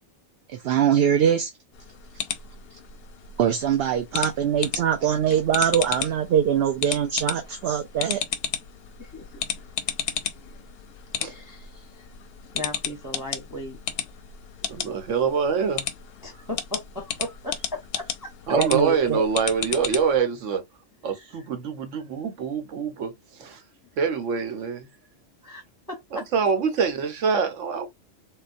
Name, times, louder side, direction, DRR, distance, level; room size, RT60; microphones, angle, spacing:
voice 1, 0.5-1.5 3.4-8.2 18.5-19.2, right 9 dB, 65° right, 0.7 m, -23 dB
sound 1, 1.7-20.2, left 8 dB, 65° left, 0.7 m, -34 dB
voice 2, 9.0-9.4 11.2-12.1 12.5-13.8 14.1-14.2 16.2-18.3 21.2-21.3 25.4-25.6 25.9-26.2, left 1 dB, 20° left, 0.7 m, -37 dB
voice 3, 14.7-15.9 18.5-20.6 21.0-23.1 23.4-23.6 24.0-24.9 26.1-27.9, right 5 dB, 90° right, 1.1 m, -25 dB
3.6 x 2.2 x 2.5 m
omnidirectional pair, 1.2 m